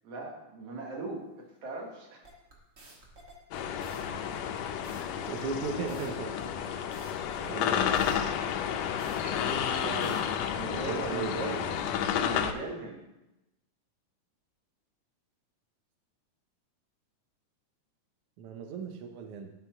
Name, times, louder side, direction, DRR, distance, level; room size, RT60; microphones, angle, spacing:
voice 1, 0.0-2.2 4.0-4.3 6.0-6.1 9.2-9.6 10.5-11.7 12.1-13.0, right 3 dB, 55° right, 0 dB, 2.4 m, -39 dB
sound 1, 2.2-10.2, right 2 dB, 40° right, 1.2 m, -53 dB
sound 2, 3.5-12.5, left 8 dB, 80° left, 1.6 m, -31 dB
voice 2, 5.3-6.3 6.7-7.0 7.4-8.1 9.5-10.2 10.6-11.7 18.4-19.5, right 5 dB, 80° right, 5 dB, 1.3 m, -38 dB
11.5 x 4.2 x 5.6 m, 0.95 s
omnidirectional pair, 3.5 m